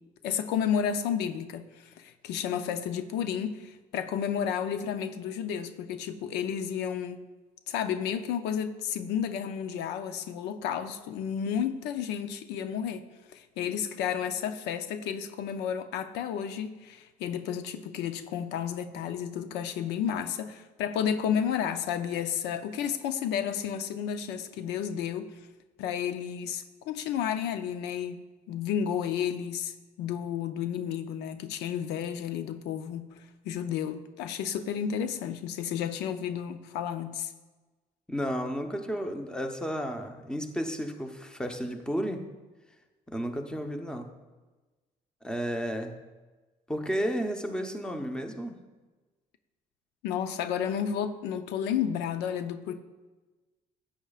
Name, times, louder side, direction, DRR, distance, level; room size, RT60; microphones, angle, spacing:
voice 1, 0.2-7.3 7.7-25.3 25.8-33.1 33.4-37.3 50.0-52.8, left 8 dB, 90° left, 9 dB, 0.6 m, -32 dB
voice 2, 38.1-42.2 43.1-44.1 45.2-46.0 46.7-48.6, equal, 5° left, 4 dB, 0.9 m, -32 dB
13.0 x 8.7 x 2.4 m, 1.2 s
cardioid pair, 110°, 17 cm